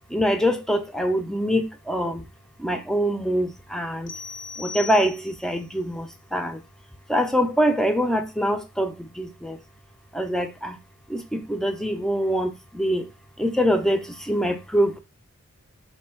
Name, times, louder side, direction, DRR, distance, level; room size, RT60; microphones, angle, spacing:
voice 1, 0.1-2.3 2.6-4.1 4.6-6.6 7.1-9.6 10.1-10.8 11.1-13.1 13.4-15.0, equal, ahead, 0.5 m, -24 dB
sound 1, 4.1-5.6, left 5 dB, 60° left, 0.6 m, -38 dB
4.3 x 2.3 x 4.4 m
head